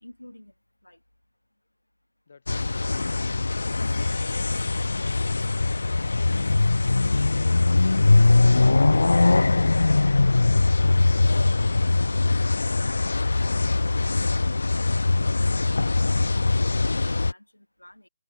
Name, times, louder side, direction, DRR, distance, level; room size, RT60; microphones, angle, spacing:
voice 1, 0.0-0.5 0.8-1.0 13.4-14.1 14.4-14.6 14.9-18.1, left 1 dB, 85° left, 2.9 m, -49 dB
voice 2, 2.3-3.4 7.4-8.3, left 5 dB, 50° left, 5.5 m, -52 dB
sound 1, 2.5-17.3, left 3 dB, 70° left, 0.3 m, -21 dB
Coin (dropping), 3.9-11.8, left 9 dB, 35° left, 4.3 m, -55 dB
figure-of-eight pair, 145°, 0 cm